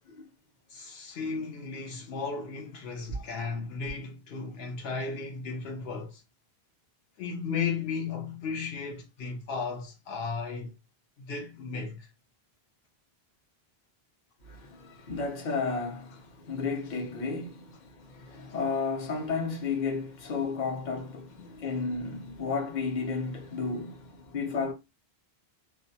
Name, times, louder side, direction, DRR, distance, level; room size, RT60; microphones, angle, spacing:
voice 1, 0.7-6.2 7.2-10.7 11.2-12.1 21.4-21.8, left 5 dB, 75° left, 0.9 m, -35 dB
voice 2, 3.1-3.5 14.4-24.7, left 4 dB, 50° left, 0.8 m, -33 dB
2.4 x 2.1 x 2.6 m
omnidirectional pair, 1.0 m